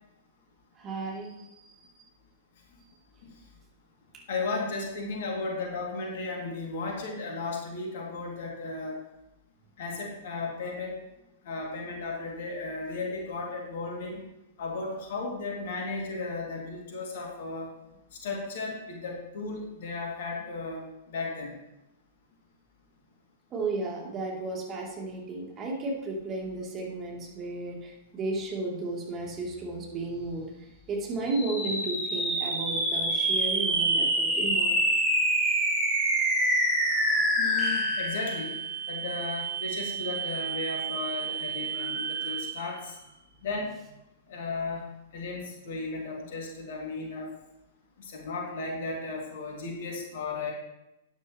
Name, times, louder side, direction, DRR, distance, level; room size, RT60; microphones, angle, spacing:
voice 1, 0.8-1.3 1.7-1.8 23.5-30.5 30.9-34.8, right 3 dB, 25° right, -3 dB, 3.2 m, -33 dB
voice 2, 4.3-9.0 9.8-10.9 11.4-14.2 14.6-17.7 18.2-20.8 21.1-21.5 37.4-38.5 38.9-42.9 43.4-43.7 44.3-44.8 45.1-47.3 48.0-50.5, left 3 dB, 55° left, 0 dB, 2.7 m, -35 dB
sound 1, 31.2-42.8, right 1 dB, 10° right, 3.6 m, -27 dB
13.0 x 9.7 x 3.2 m, 0.91 s
figure-of-eight pair, 105°, 0 cm